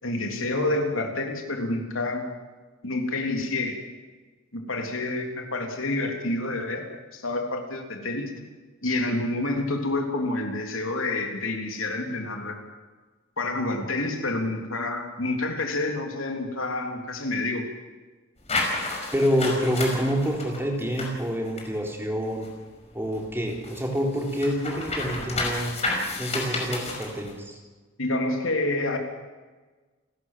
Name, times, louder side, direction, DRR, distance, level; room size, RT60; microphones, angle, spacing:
voice 1, 0.0-2.3 2.8-3.8 4.5-8.4 8.8-12.6 13.4-17.7 28.0-29.0, left 2 dB, 80° left, 4 dB, 3.4 m, -28 dB
sound 1, 18.4-22.7 23.0-27.3, left 2 dB, 35° left, 5.4 m, -31 dB
voice 2, 19.1-22.5 22.9-25.7 26.2-27.6, equal, 10° right, 1 dB, 4.0 m, -27 dB
29.5 x 13.5 x 7.6 m, 1.3 s
head